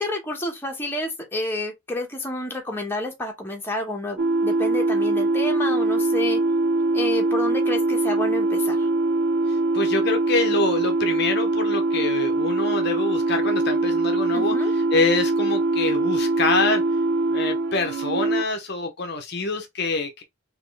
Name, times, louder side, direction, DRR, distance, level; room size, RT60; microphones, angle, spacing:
voice 1, 0.0-6.4 6.9-8.9 14.3-14.7, left 1 dB, 10° left, 1.1 m, -29 dB
sound 1, 4.2-18.4, right 2 dB, 55° right, 0.4 m, -22 dB
voice 2, 9.7-14.5 14.9-16.8 17.3-20.2, left 3 dB, 50° left, 0.7 m, -25 dB
4.1 x 3.0 x 3.2 m
head